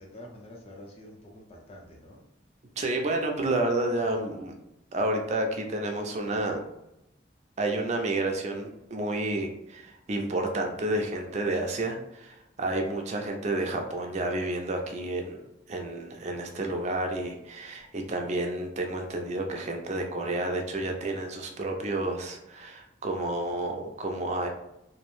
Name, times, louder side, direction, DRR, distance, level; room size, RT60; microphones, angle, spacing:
voice 1, 0.0-2.2, left 1 dB, 30° left, 0 dB, 0.5 m, -47 dB
voice 2, 2.8-4.5 4.9-6.6 7.6-15.4 15.7-24.5, right 2 dB, 35° right, 3 dB, 0.4 m, -30 dB
2.6 x 2.0 x 3.0 m, 0.86 s
head